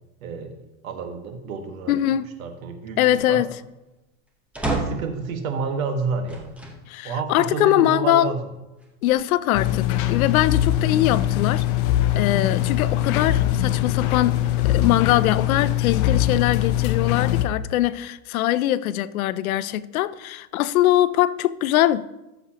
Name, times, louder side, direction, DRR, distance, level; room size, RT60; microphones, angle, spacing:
voice 1, 0.2-0.5 0.8-1.9 2.4-3.0 3.3-3.4 4.7-6.5 7.0-8.5, right 5 dB, 75° right, 1.6 m, -29 dB
voice 2, 1.9-2.3 3.0-3.5 6.9-8.3 9.0-11.7 12.2-22.1, left 13 dB, 80° left, 0.6 m, -22 dB
sound 1, 4.5-5.2 6.3-6.8 7.5-7.6 8.8-9.6, right 2 dB, 5° right, 0.8 m, -30 dB
sound 2, 9.5-17.5, left 12 dB, 40° left, 0.6 m, -22 dB
14.5 x 7.0 x 2.9 m
supercardioid pair, 155°, 42 cm